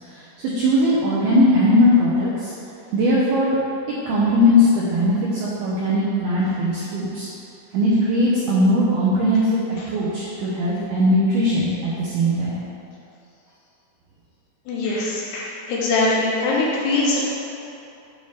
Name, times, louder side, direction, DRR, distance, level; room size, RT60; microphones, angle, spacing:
voice 1, 0.5-2.5 2.9-3.6 4.1-7.3 7.7-9.6 9.9-12.6, left 1 dB, 85° right, -7 dB, 2.2 m, -19 dB
voice 2, 14.7-17.3, left 2 dB, 80° left, -4 dB, 2.4 m, -22 dB
9.0 x 3.2 x 5.5 m, 2.9 s
omnidirectional pair, 5.6 m